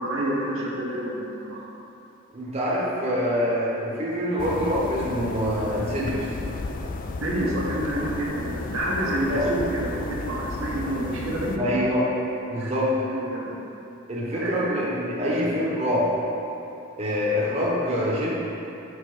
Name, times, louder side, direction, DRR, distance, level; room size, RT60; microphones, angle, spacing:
voice 1, 0.0-1.6 7.2-11.8 12.5-12.7 13.1-13.6 14.4-14.6 15.2-15.3, right 1 dB, 70° right, -5 dB, 1.0 m, -28 dB
voice 2, 2.3-6.3 9.3-9.5 11.6-12.1 12.5-13.0 14.1-16.1 17.0-18.3, equal, 30° right, -6 dB, 0.9 m, -25 dB
sound 1, 4.4-11.6, left 3 dB, 40° left, 0.3 m, -34 dB
6.4 x 3.5 x 4.8 m, 2.9 s
head